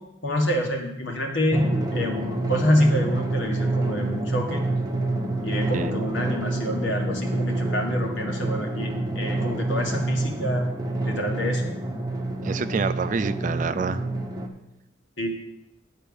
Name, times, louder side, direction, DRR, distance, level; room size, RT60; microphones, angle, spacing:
voice 1, 0.2-4.7 5.4-10.7 11.1-11.7 15.2-15.3, left 1 dB, 70° left, 1 dB, 1.7 m, -27 dB
Drum, 1.5-14.5, right 2 dB, 20° right, 0.9 m, -27 dB
voice 2, 12.4-14.1, right 5 dB, 40° right, 11 dB, 0.4 m, -27 dB
10.0 x 4.5 x 6.9 m, 0.91 s
head